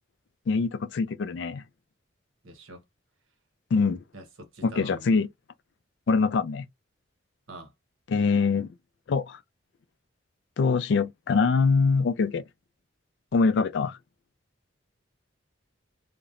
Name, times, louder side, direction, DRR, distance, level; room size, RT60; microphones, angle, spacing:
voice 1, 0.5-1.6 3.7-4.0 4.6-5.3 6.1-6.7 8.1-8.7 9.1-9.4 10.6-12.4 13.3-14.0, left 4 dB, 60° left, 0.3 m, -24 dB
voice 2, 2.4-2.8 4.1-5.2 7.5-7.7, right 1 dB, 85° right, 1.0 m, -45 dB
2.9 x 2.0 x 2.4 m
head